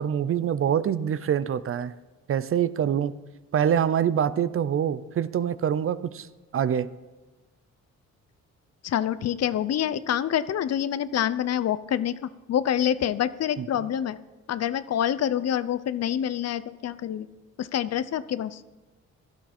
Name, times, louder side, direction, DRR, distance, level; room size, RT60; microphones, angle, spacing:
voice 1, 0.0-1.9 2.3-3.2 3.5-6.3 6.5-6.9 13.6-13.7, right 9 dB, 45° right, 16 dB, 0.6 m, -25 dB
voice 2, 8.8-14.2 14.5-17.3 17.6-18.6, left 10 dB, 55° left, 15 dB, 0.7 m, -27 dB
16.5 x 12.5 x 4.4 m, 1.2 s
cardioid pair, 90°, 30 cm